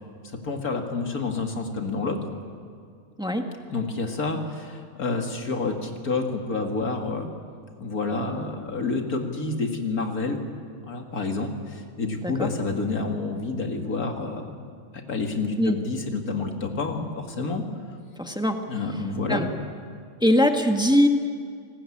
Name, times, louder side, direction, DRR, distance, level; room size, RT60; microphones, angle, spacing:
voice 1, 0.4-2.2 3.7-7.3 7.8-10.4 10.9-14.6 14.9-17.6 18.7-19.5, left 3 dB, 80° left, 3 dB, 2.7 m, -28 dB
voice 2, 18.2-18.6 19.3-19.5 20.2-21.1, equal, 5° right, 4 dB, 1.5 m, -21 dB
28.0 x 19.5 x 8.7 m, 2.2 s
omnidirectional pair, 1.5 m